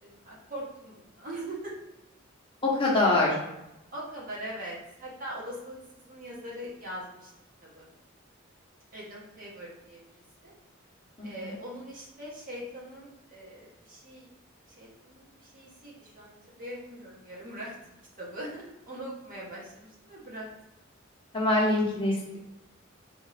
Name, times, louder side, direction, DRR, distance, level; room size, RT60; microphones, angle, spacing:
voice 1, 0.0-1.7 3.9-7.3 7.6-7.9 8.9-10.0 10.4-10.5 11.2-14.3 14.8-17.7 18.2-20.5, right 1 dB, 45° right, -5 dB, 1.0 m, -41 dB
voice 2, 2.6-3.4 11.2-11.5 21.3-22.4, left 2 dB, 25° left, -5 dB, 0.8 m, -24 dB
3.5 x 2.5 x 3.2 m, 0.93 s
head